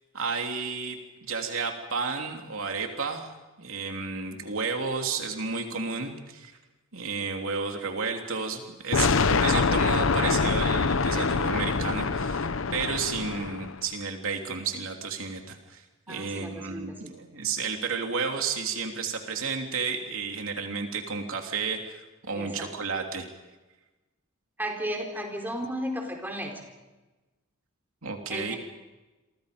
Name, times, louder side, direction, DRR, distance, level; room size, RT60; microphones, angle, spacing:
voice 1, 0.1-3.3 3.6-6.5 6.9-23.3 28.0-28.6, right 5 dB, 70° right, 3 dB, 3.1 m, -32 dB
sound 1, 8.9-13.8, left 4 dB, 65° left, 0.8 m, -25 dB
voice 2, 16.1-17.1 22.3-22.7 24.6-26.5 28.3-28.6, equal, 10° right, 2 dB, 4.2 m, -34 dB
30.0 x 24.5 x 5.2 m, 1.1 s
head